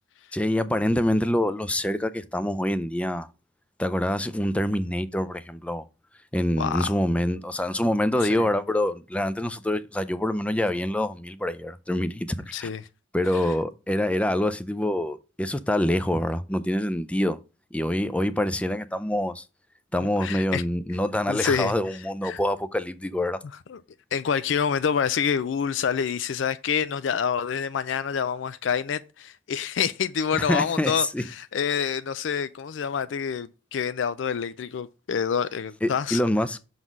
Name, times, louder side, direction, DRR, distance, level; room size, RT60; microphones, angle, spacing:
voice 1, 0.3-3.3 3.8-5.9 6.3-12.7 13.1-17.4 17.7-19.4 19.9-23.4 30.4-31.3 35.8-36.6, left 1 dB, 5° left, 0.4 m, -26 dB
voice 2, 6.6-6.9 8.3-8.5 12.5-12.8 20.2-20.6 21.3-21.7 22.2-22.4 23.7-23.8 24.1-36.2, left 7 dB, 80° left, 0.4 m, -27 dB
6.1 x 4.0 x 5.2 m
head